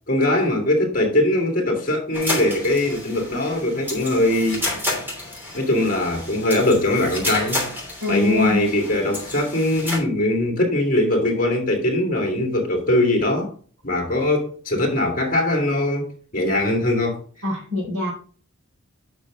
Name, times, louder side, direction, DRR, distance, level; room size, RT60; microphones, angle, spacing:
voice 1, 0.1-4.6 5.5-7.6 8.1-13.5 13.8-17.2, left 1 dB, 40° left, 2.3 m, -21 dB
sound 1, 2.1-10.0, left 1 dB, 10° right, 3.0 m, -31 dB
voice 2, 8.0-8.6 17.4-18.1, left 2 dB, 65° right, 4.4 m, -23 dB
8.4 x 6.2 x 3.7 m
head